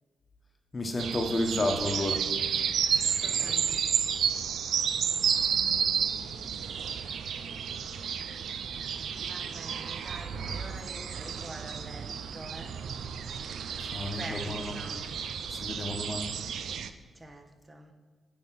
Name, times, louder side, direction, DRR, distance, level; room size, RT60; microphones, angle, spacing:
voice 1, 0.7-2.2 10.3-10.5 13.8-14.7 15.5-16.3, left 1 dB, 35° left, 3 dB, 1.2 m, -31 dB
sound 1, 1.0-16.9, right 7 dB, 75° right, 0.4 m, -31 dB
voice 2, 3.0-4.3 9.1-12.8 14.0-15.0 17.1-17.9, right 1 dB, 25° right, 5 dB, 1.2 m, -46 dB
9.0 x 3.5 x 5.8 m, 1.4 s
supercardioid pair, 50°, 0 cm